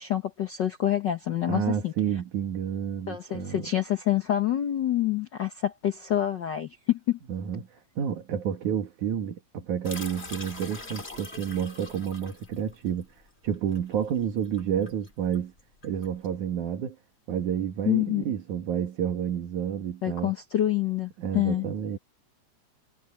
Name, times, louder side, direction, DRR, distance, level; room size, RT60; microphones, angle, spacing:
voice 1, 0.0-1.9 3.1-7.2 17.9-18.2 20.0-21.7, left 12 dB, 65° left, 1.1 m, -27 dB
voice 2, 1.5-3.7 7.3-13.1 13.4-15.5 15.8-17.0 17.3-20.3 21.2-22.0, right 9 dB, 75° right, 3.3 m, -30 dB
sound 1, 9.8-16.3, left 3 dB, 20° left, 2.5 m, -43 dB
omnidirectional pair, 3.5 m